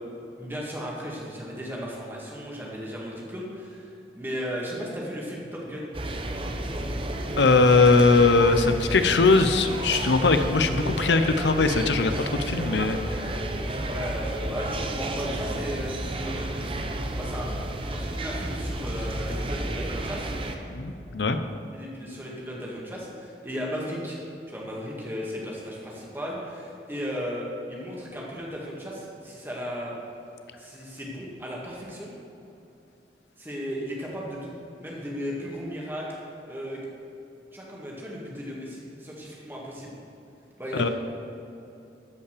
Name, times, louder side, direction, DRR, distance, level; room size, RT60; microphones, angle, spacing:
voice 1, 0.4-5.9 13.8-16.5 17.2-17.5 17.9-20.3 21.7-24.2 24.5-29.9 30.6-32.1 33.4-34.5 34.8-36.1 36.5-36.8 37.5-39.9 40.6-40.9, equal, 10° right, -4 dB, 2.0 m, -35 dB
sound 1, 5.9-20.6, right 1 dB, 30° right, 0.8 m, -31 dB
voice 2, 7.4-12.1 12.5-13.0 20.7-21.4 40.8-40.9, left 3 dB, 85° left, 9 dB, 0.7 m, -20 dB
13.5 x 5.7 x 6.7 m, 2.8 s
head